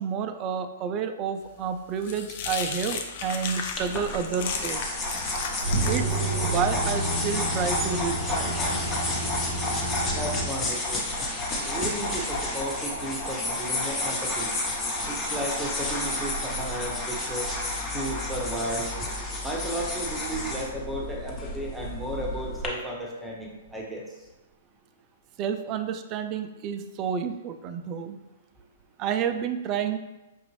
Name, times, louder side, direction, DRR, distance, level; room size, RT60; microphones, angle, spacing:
voice 1, 0.0-4.8 5.9-6.1 6.4-8.8 19.0-19.1 25.4-28.2 29.0-30.0, right 7 dB, 35° right, 9 dB, 0.3 m, -30 dB
sound 1, 1.5-9.8, left 6 dB, 50° left, 0.5 m, -36 dB
sound 2, 3.8-22.7, left 1 dB, 20° left, 0.9 m, -31 dB
sound 3, 4.9-10.4, right 2 dB, 85° left, 1.1 m, -30 dB
voice 2, 10.1-11.1 11.6-14.5 15.0-17.5 17.9-18.9 19.4-24.1, right 1 dB, 5° right, -2 dB, 0.8 m, -34 dB
5.3 x 2.5 x 3.1 m, 1.0 s
hypercardioid pair, 115°, 0 cm